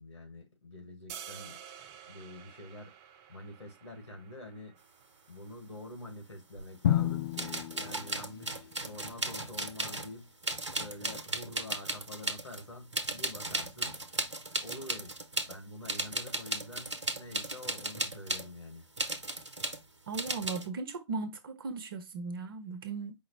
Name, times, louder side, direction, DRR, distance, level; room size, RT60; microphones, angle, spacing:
voice 1, 0.0-1.6 2.0-2.9 3.3-4.8 5.3-10.3 10.8-14.0 14.6-18.9, left 1 dB, 80° left, 2.0 m, -47 dB
sound 1, 1.1-7.2, right 9 dB, 20° right, 0.4 m, -51 dB
sound 2, 6.6-6.7 7.3-10.2 10.4-12.6 12.9-15.6 15.8-18.5 19.0-19.8 20.1-20.7, right 2 dB, 75° right, 0.8 m, -36 dB
Drum, 6.8-8.9, left 11 dB, 50° left, 0.4 m, -31 dB
voice 2, 20.1-23.1, right 4 dB, 50° right, 0.9 m, -37 dB
5.1 x 2.0 x 4.1 m
figure-of-eight pair, 125°, 15 cm